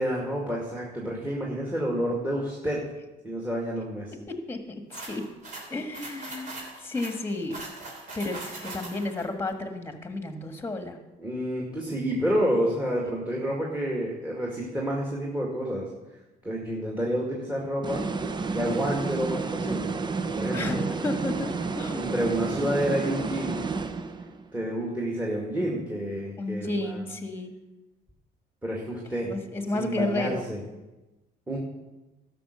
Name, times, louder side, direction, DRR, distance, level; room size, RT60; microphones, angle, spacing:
voice 1, 0.0-2.8 3.2-4.1 11.2-15.9 16.4-18.0 18.5-19.9 20.3-21.0 21.9-23.7 24.5-27.0 28.6-29.3 29.7-30.6 31.5-31.6, equal, 10° right, -2 dB, 2.1 m, -29 dB
voice 2, 4.3-5.3 5.7-6.6 6.8-7.6 8.1-11.0 20.5-22.1 26.4-27.5 29.2-30.5, left 2 dB, 15° left, 6 dB, 1.5 m, -32 dB
sound 1, 4.9-9.2, right 2 dB, 50° right, 3.2 m, -40 dB
sound 2, 17.8-24.4, right 4 dB, 25° right, 0.7 m, -31 dB
12.5 x 6.2 x 6.7 m, 1.1 s
cardioid pair, 110°, 17 cm